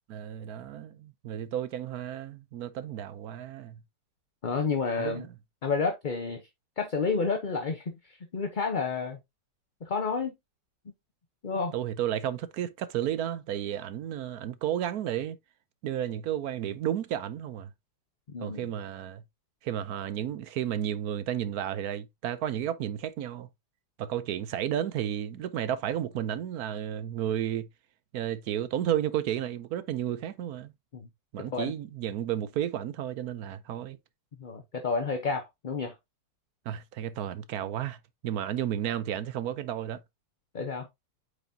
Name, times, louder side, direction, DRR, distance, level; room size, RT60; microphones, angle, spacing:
voice 1, 0.1-3.8 5.0-5.3 11.7-15.4 15.8-17.7 18.4-19.2 19.6-23.5 24.0-27.7 28.1-30.7 31.3-34.0 36.7-38.0 38.2-40.0, right 10 dB, 70° right, 1.1 m, -32 dB
voice 2, 4.4-5.3 5.6-6.4 6.8-9.2 9.8-10.3 11.4-11.7 18.3-18.7 30.9-31.1 31.5-31.7 34.4-36.0 40.5-40.9, left 4 dB, 35° left, 0.8 m, -30 dB
9.0 x 5.0 x 2.7 m
omnidirectional pair, 1.8 m